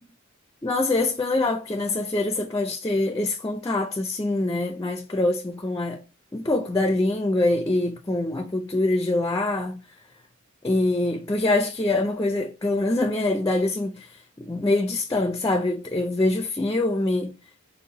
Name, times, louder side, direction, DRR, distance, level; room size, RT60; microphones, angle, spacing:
voice 1, 0.6-6.0 6.3-9.8 10.6-14.2 14.5-17.3, left 2 dB, 15° left, 0.4 m, -24 dB
5.4 x 2.1 x 3.8 m
head